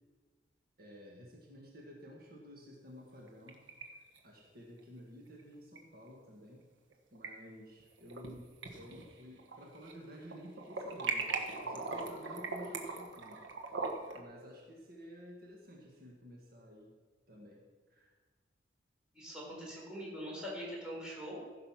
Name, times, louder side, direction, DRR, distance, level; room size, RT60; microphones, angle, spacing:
voice 1, 0.8-3.6 3.9-6.7 7.1-11.3 11.6-13.4 14.1-16.9 17.3-17.6 17.9-18.1 20.9-21.0, equal, 50° right, -1 dB, 1.7 m, -52 dB
sound 1, 3.1-3.8 4.1-4.2 5.8-5.9 6.9-7.3 7.8-8.3 8.6-10.0 10.3-14.2, right 4 dB, 80° right, 1.5 m, -39 dB
voice 2, 19.1-21.4, equal, 5° right, -5 dB, 4.4 m, -43 dB
15.0 x 6.7 x 5.8 m, 1.4 s
head